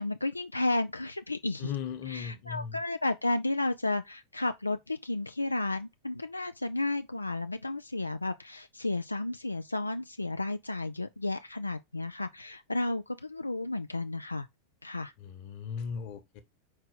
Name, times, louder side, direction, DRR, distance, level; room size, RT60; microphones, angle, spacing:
voice 1, 0.0-1.7 2.1-14.5 14.8-15.1, left 2 dB, 85° left, 0.4 m, -32 dB
voice 2, 1.6-2.8 15.2-16.4, left 7 dB, 45° left, 1.2 m, -37 dB
5.4 x 4.6 x 3.9 m
figure-of-eight pair, 90°, 0 cm